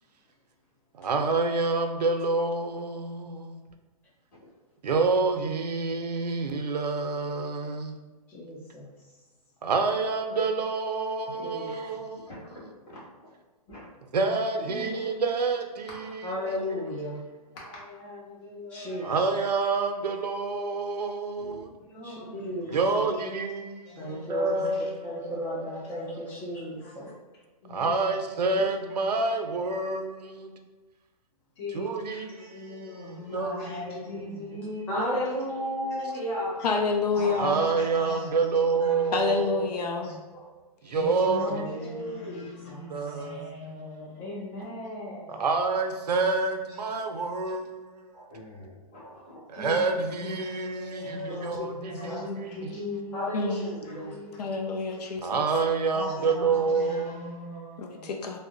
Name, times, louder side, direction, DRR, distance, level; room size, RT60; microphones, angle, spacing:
voice 1, 1.0-3.6 4.8-8.0 9.6-12.6 14.1-16.3 19.0-21.7 22.7-25.4 25.7-26.3 27.7-30.5 31.7-32.7 33.3-34.0 37.3-39.7 40.8-41.9 42.9-43.5 45.3-48.1 49.5-52.5 55.2-57.3, right 4 dB, 90° right, 5 dB, 0.5 m, -28 dB
voice 2, 8.3-8.9 11.3-11.7 12.0-12.1 16.2-17.2 18.7-19.2 22.0-23.0 24.0-24.6 25.0-27.1 34.9-36.5 41.7-42.9 51.0-51.1 52.0-52.2 53.1-54.2, equal, 10° left, -8 dB, 0.4 m, -33 dB
voice 3, 12.3-13.0 13.7-13.9 21.4-21.7 40.3-40.5 48.1-49.4, equal, 25° left, -8 dB, 1.5 m, -46 dB
voice 4, 14.6-15.1 15.8-16.0 17.5-19.2 21.8-23.3 23.8-24.4 24.7-24.8 26.8-26.9 27.6-28.0 29.0-29.2 31.6-35.3 36.6-36.7 37.1-39.2 40.0-40.1 40.9-45.4 49.5-49.8 50.2-55.0 55.9-58.1, left 2 dB, 45° left, -6 dB, 1.4 m, -40 dB
voice 5, 36.6-37.6 39.1-40.1 40.9-41.0 53.3-53.7 54.4-55.5 57.8-58.4, left 4 dB, 80° left, 3 dB, 0.5 m, -28 dB
3.5 x 2.1 x 2.5 m, 1.2 s
hypercardioid pair, 140°, 20 cm